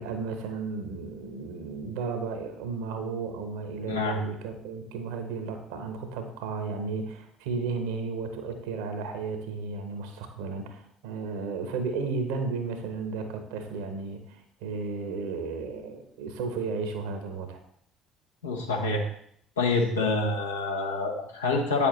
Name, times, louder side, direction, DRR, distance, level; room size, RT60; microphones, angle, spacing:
voice 1, 0.0-17.6, right 4 dB, 65° right, 7 dB, 1.1 m, -34 dB
voice 2, 3.9-4.2 18.4-19.0 19.6-21.9, left 3 dB, 75° left, 1 dB, 1.1 m, -27 dB
8.8 x 7.0 x 3.2 m, 0.70 s
figure-of-eight pair, 55°, 0 cm